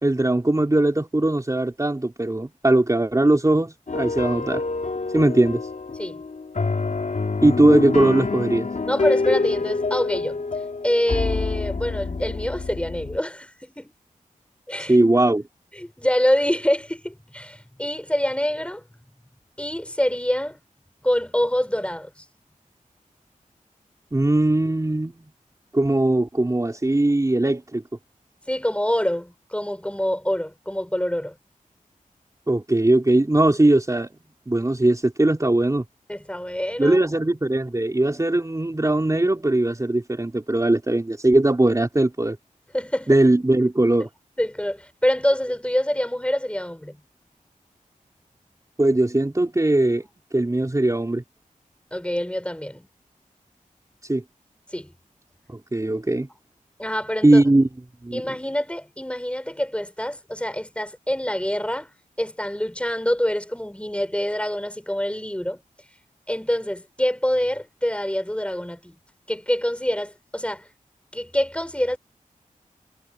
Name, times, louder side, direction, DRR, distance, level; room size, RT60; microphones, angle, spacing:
voice 1, 0.0-4.6 5.1-5.6 7.4-8.7 14.9-15.4 24.1-25.3 25.7-27.8 32.5-34.1 34.5-35.8 36.8-42.4 43.1-44.1 48.8-50.0 50.3-51.2 54.0-54.2 55.5-56.3 57.2-57.7 58.0-58.4, right 2 dB, 25° right, 3.2 m, -20 dB
sound 1, 3.9-13.2, left 3 dB, 60° left, 3.7 m, -26 dB
voice 2, 8.9-10.4 10.8-13.9 14.7-15.0 15.8-18.8 19.6-20.6 21.0-22.1 28.5-31.4 36.1-37.0 42.7-43.2 44.4-47.0 51.9-52.9 54.7-54.9 56.8-57.4 58.1-61.9 62.2-65.6 66.3-69.0 69.3-70.6 71.1-72.0, equal, 10° left, 6.2 m, -25 dB
cardioid pair, 55°, 14 cm